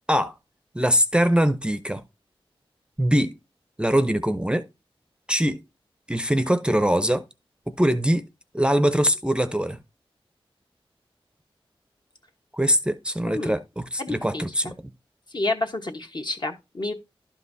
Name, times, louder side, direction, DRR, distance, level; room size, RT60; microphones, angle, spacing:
voice 1, 0.7-2.0 3.0-3.3 3.8-4.6 5.3-5.6 6.1-7.2 7.8-8.2 8.5-9.8 12.5-14.7, equal, 10° right, 0.5 m, -22 dB
voice 2, 13.3-13.6 14.0-14.4 15.3-16.9, left 2 dB, 50° left, 1.1 m, -29 dB
11.5 x 5.4 x 2.7 m
wide cardioid pair, 75°, 10 cm